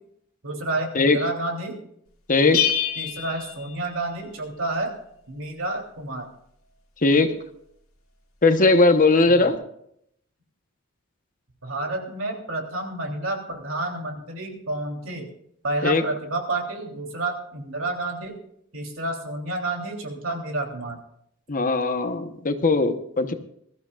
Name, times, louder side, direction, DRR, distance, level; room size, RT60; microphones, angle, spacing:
voice 1, 0.4-1.8 2.4-2.5 3.0-4.9 5.3-6.3 9.3-9.5 11.6-15.3 15.6-18.4 18.7-21.0, right 2 dB, 70° right, 1 dB, 3.3 m, -30 dB
voice 2, 2.3-2.6 7.0-7.3 8.4-9.6 15.8-16.0 21.5-23.3, left 3 dB, 40° left, 8 dB, 1.1 m, -19 dB
Bell, 2.5-4.4, left 10 dB, 80° left, 2.6 m, -27 dB
21.5 x 14.0 x 2.5 m, 0.71 s
head